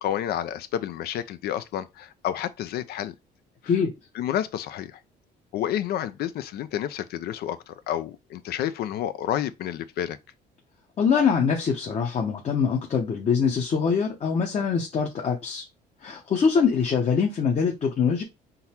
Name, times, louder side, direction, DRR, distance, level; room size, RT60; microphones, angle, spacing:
voice 1, 0.0-3.1 3.6-3.7 4.1-5.0 5.5-10.2, left 11 dB, 70° left, 0.5 m, -30 dB
voice 2, 11.0-15.6 16.0-18.2, left 6 dB, 40° left, 0.9 m, -23 dB
3.9 x 2.8 x 4.3 m
cardioid pair, 110°, 17 cm